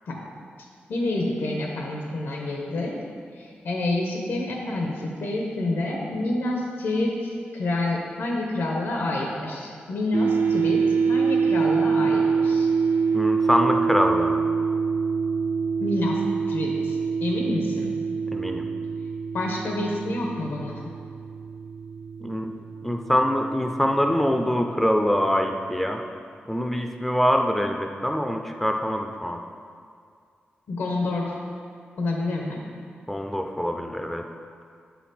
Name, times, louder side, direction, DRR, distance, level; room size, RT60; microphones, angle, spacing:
voice 1, 0.9-3.0 3.3-10.8 11.1-12.7 15.8-17.9 19.3-20.9 30.7-31.3 32.0-32.6, left 2 dB, 90° left, -1 dB, 1.0 m, -28 dB
sound 1, 10.1-25.4, right 5 dB, 50° right, 0.5 m, -26 dB
voice 2, 13.1-14.5 18.3-18.7 22.2-22.5 22.8-26.0 26.5-29.4 33.1-34.2, equal, 5° left, 3 dB, 0.3 m, -24 dB
7.6 x 5.9 x 4.2 m, 2.2 s
wide cardioid pair, 175°, 4 cm